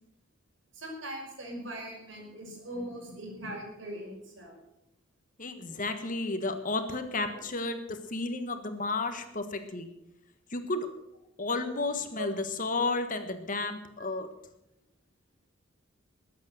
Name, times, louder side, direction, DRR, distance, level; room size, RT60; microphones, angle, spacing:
voice 1, 0.7-4.6 12.2-12.3, equal, 70° right, 1 dB, 5.6 m, -40 dB
voice 2, 5.4-9.9 10.5-10.9 11.4-14.3, left 3 dB, 40° left, 8 dB, 1.5 m, -32 dB
20.5 x 8.6 x 6.4 m, 0.85 s
head